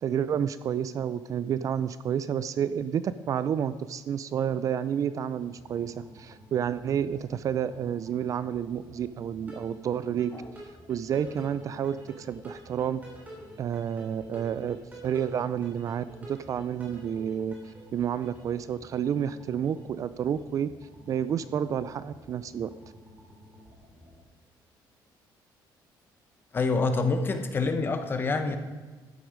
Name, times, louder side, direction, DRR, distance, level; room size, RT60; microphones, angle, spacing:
voice 1, 0.0-10.3 10.9-13.0 13.6-14.8 15.0-17.5 17.9-20.7 21.1-22.7, right 8 dB, 45° right, 15 dB, 0.4 m, -30 dB
sound 1, 5.4-24.2, right 1 dB, 20° right, 3.5 m, -50 dB
voice 2, 26.5-28.6, left 3 dB, 25° left, 8 dB, 1.0 m, -26 dB
12.5 x 9.5 x 5.1 m, 1.4 s
cardioid pair, 155°, 8 cm